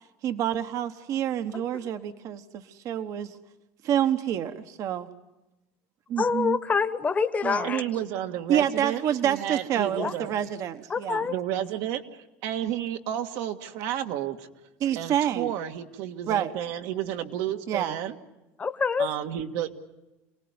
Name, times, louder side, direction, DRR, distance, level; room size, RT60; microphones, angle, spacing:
voice 1, 0.2-3.3 3.8-5.1 6.1-6.6 7.4-7.7 8.5-11.3 14.8-15.5 16.3-16.5 17.7-18.0, right 10 dB, 55° right, 9 dB, 1.3 m, -28 dB
voice 2, 6.2-7.8 10.0-10.1 10.9-11.3 18.6-19.1, left 5 dB, 20° left, 9 dB, 1.2 m, -26 dB
voice 3, 7.6-10.4 11.3-14.5 15.0-18.2 19.0-19.7, right 11 dB, 75° right, 6 dB, 1.8 m, -31 dB
28.0 x 18.5 x 9.6 m, 1.0 s
supercardioid pair, 120°, 7 cm